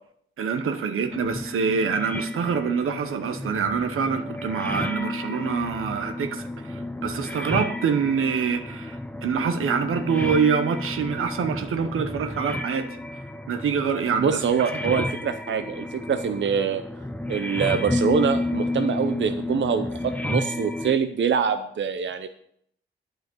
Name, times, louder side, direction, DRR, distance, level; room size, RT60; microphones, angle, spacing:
voice 1, 0.4-13.0 13.5-14.4, right 6 dB, 90° right, 7 dB, 1.0 m, -25 dB
sound 1, 1.1-21.0, left 2 dB, 5° left, 0.7 m, -31 dB
voice 2, 14.2-16.8 17.3-22.3, right 6 dB, 65° right, 8 dB, 0.7 m, -24 dB
9.1 x 4.9 x 7.8 m, 0.69 s
cardioid pair, 65°, 21 cm